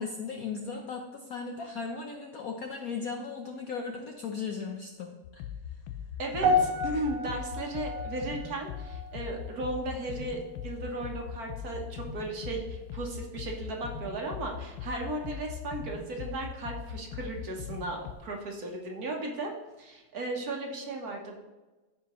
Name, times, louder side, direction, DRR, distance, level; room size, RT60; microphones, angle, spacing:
voice 1, 0.0-5.5, left 5 dB, 65° left, 2 dB, 0.9 m, -37 dB
sound 1, 5.2-18.1, left 8 dB, 90° left, 1.5 m, -40 dB
voice 2, 6.2-19.5 19.8-21.4, right 2 dB, 50° right, 1 dB, 1.4 m, -35 dB
sound 2, 6.4-10.8 11.1-11.5 12.1-12.2, left 1 dB, 80° right, 1.9 m, -32 dB
14.0 x 5.0 x 3.0 m, 1.2 s
omnidirectional pair, 2.3 m